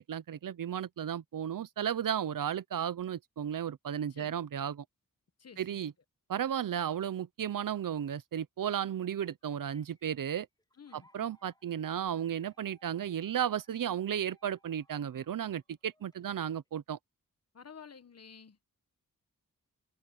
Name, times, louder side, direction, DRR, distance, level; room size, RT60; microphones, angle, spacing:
voice 1, 0.1-4.8 5.6-5.9 6.3-10.5 10.9-17.0, right 9 dB, 70° right, 0.7 m, -34 dB
voice 2, 5.4-5.8 10.8-11.1 17.5-18.7, left 6 dB, 50° left, 1.1 m, -52 dB
sound 1, 9.2-16.7, equal, 10° left, 5.6 m, -69 dB
wide cardioid pair, 135°, 34 cm